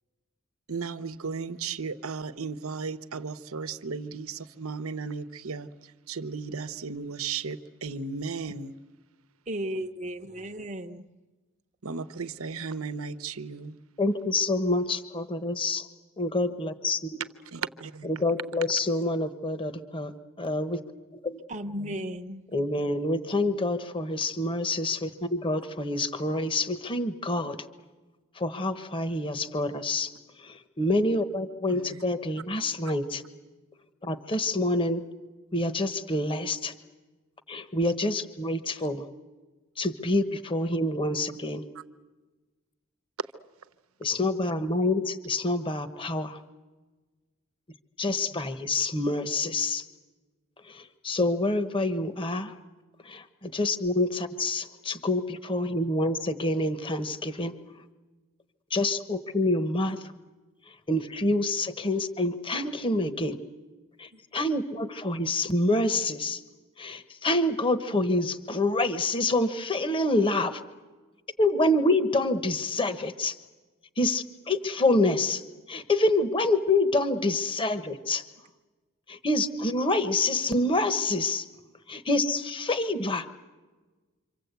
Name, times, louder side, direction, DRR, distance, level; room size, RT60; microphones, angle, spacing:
voice 1, 0.7-8.7 11.8-13.8 17.4-18.2 18.9-19.2 31.7-32.0 38.7-38.8 41.7-41.8 43.2-43.3, right 5 dB, 90° right, 0.9 m, -35 dB
voice 2, 9.5-11.1 21.5-22.4 48.3-48.4 64.1-64.2, equal, 35° right, 0.9 m, -35 dB
voice 3, 14.0-15.8 16.2-17.2 18.1-20.1 20.4-20.8 21.2-21.4 22.5-27.6 28.4-30.1 30.8-33.2 34.0-35.0 35.5-36.7 37.5-39.0 39.8-41.6 44.0-46.4 48.0-49.8 51.0-52.5 53.1-57.5 58.7-60.0 60.9-63.4 64.0-64.1 64.3-66.4 66.8-70.6 71.4-73.3 74.0-75.4 75.7-78.2 79.1-81.4 81.9-83.3, left 2 dB, 25° left, 1.0 m, -27 dB
27.0 x 25.5 x 8.2 m
head